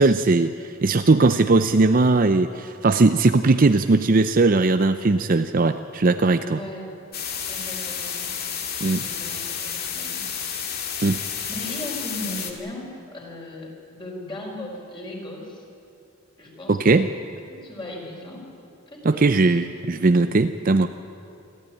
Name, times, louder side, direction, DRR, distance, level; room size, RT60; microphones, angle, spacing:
voice 1, 0.0-6.6 8.8-9.0 11.0-11.2 16.7-17.1 19.0-20.9, right 3 dB, 40° right, 9 dB, 0.5 m, -19 dB
voice 2, 6.5-7.1 7.5-8.3 8.9-10.3 11.5-15.6 16.4-17.1 17.5-18.4 18.9-19.6 20.0-20.2, left 1 dB, 20° left, -1 dB, 4.8 m, -37 dB
sound 1, 7.1-12.5, left 7 dB, 50° left, 2.2 m, -31 dB
27.0 x 13.5 x 9.9 m, 2.8 s
head